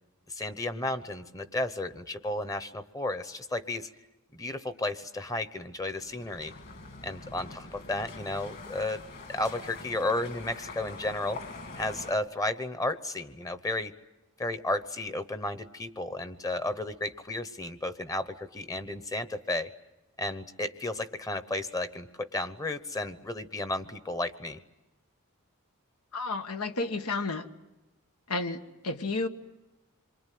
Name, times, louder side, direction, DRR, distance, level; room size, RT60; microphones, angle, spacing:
voice 1, 0.3-3.9 4.3-6.5 7.0-9.0 9.3-11.4 11.7-13.9 14.4-19.7 20.2-24.6, left 2 dB, 15° left, 12 dB, 0.9 m, -33 dB
sound 1, 5.8-12.1, left 3 dB, 50° left, 2.6 m, -44 dB
voice 2, 26.1-27.5 28.3-28.6 28.8-29.3, left 3 dB, 90° left, 7 dB, 1.5 m, -31 dB
27.0 x 23.5 x 9.3 m, 1.0 s
head